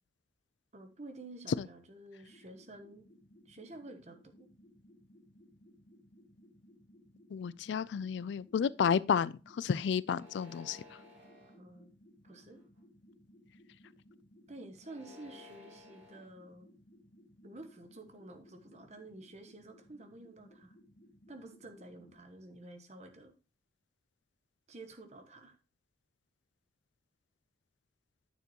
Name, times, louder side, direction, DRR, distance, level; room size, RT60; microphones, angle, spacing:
voice 1, 0.7-3.1 3.5-4.5 11.6-11.9 12.2-12.6 14.5-16.7 17.4-20.7 21.3-23.3 24.7-25.6, right 2 dB, 35° right, 1.1 m, -50 dB
sound 1, 2.2-22.1, equal, 50° left, 2.6 m, -61 dB
voice 2, 7.3-10.8, left 7 dB, 75° left, 0.3 m, -31 dB
sound 2, 10.1-11.6 12.3-12.8 14.8-16.3, left 3 dB, 75° right, 3.0 m, -56 dB
9.4 x 6.7 x 2.9 m
head